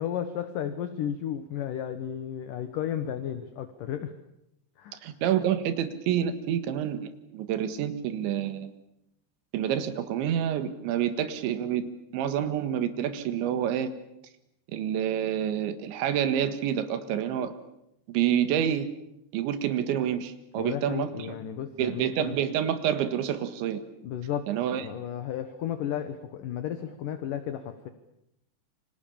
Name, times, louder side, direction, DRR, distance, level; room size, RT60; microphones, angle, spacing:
voice 1, 0.0-4.1 4.8-5.0 20.6-22.4 24.0-24.5 24.8-27.9, left 10 dB, 65° left, 9 dB, 2.3 m, -33 dB
voice 2, 5.0-8.7 9.5-13.9 14.7-17.5 18.1-18.9 19.3-21.1 21.8-23.8 24.5-24.8, right 9 dB, 85° right, 10 dB, 3.9 m, -28 dB
29.0 x 25.5 x 7.1 m, 0.81 s
omnidirectional pair, 5.2 m